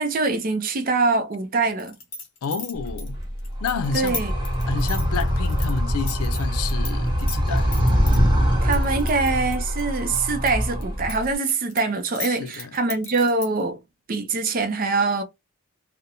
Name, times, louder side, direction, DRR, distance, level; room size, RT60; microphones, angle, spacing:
voice 1, 0.0-2.0 3.9-4.3 8.6-13.8 14.1-15.2, right 3 dB, 40° right, 0.4 m, -24 dB
sound 1, 1.8-6.9 7.2-8.2 8.7-10.5 10.8-13.6, left 3 dB, 60° left, 0.8 m, -35 dB
voice 2, 2.4-3.2 3.6-4.2 4.7-7.7 12.2-12.8, left 6 dB, 90° left, 0.4 m, -30 dB
Animal, 2.7-11.3, equal, 20° right, 0.8 m, -23 dB
2.4 x 2.0 x 2.8 m
head